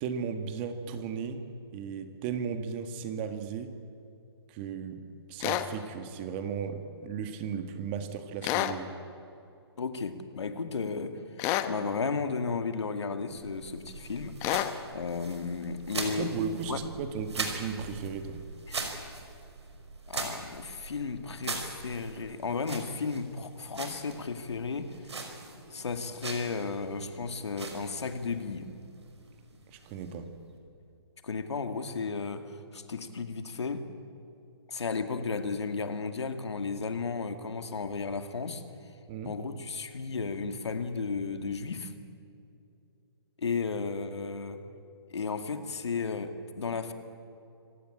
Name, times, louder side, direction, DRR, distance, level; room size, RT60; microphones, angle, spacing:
voice 1, 0.0-1.4 1.7-3.7 4.5-8.9 16.1-18.4 29.7-30.3 39.1-39.4, right 6 dB, 25° right, 8 dB, 1.7 m, -35 dB
sound 1, 5.4-5.7 8.4-8.8 11.4-11.7 14.4-14.7, left 14 dB, 20° left, 0.9 m, -28 dB
voice 2, 9.8-14.4 14.9-16.3 16.7-16.8 18.7-19.1 20.1-25.2 25.7-28.7 31.2-33.8 34.7-38.6 39.2-41.9 43.4-44.6 45.1-46.9, left 4 dB, 85° left, 7 dB, 2.3 m, -34 dB
sound 2, 13.3-30.6, right 3 dB, 85° right, 5.2 m, -41 dB
26.0 x 17.0 x 8.9 m, 2.7 s
hypercardioid pair, 155°, 14 cm